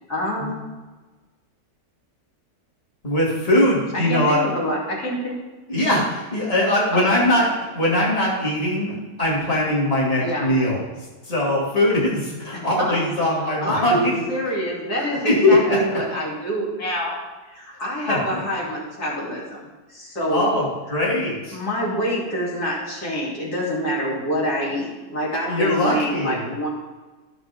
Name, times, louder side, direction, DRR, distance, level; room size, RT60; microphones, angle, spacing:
voice 1, 0.1-0.6 3.9-5.4 6.9-7.1 10.2-10.5 12.5-13.0 13.4-17.1 17.5-20.5 21.5-26.7, equal, 75° left, -7 dB, 3.7 m, -26 dB
voice 2, 3.0-4.4 5.7-7.5 7.7-10.8 11.3-14.1 14.7-14.9 15.2-15.8 18.1-18.4 20.3-21.6 25.5-26.4, left 1 dB, 25° left, -5 dB, 2.6 m, -21 dB
15.0 x 6.6 x 3.6 m, 1.2 s
omnidirectional pair, 1.6 m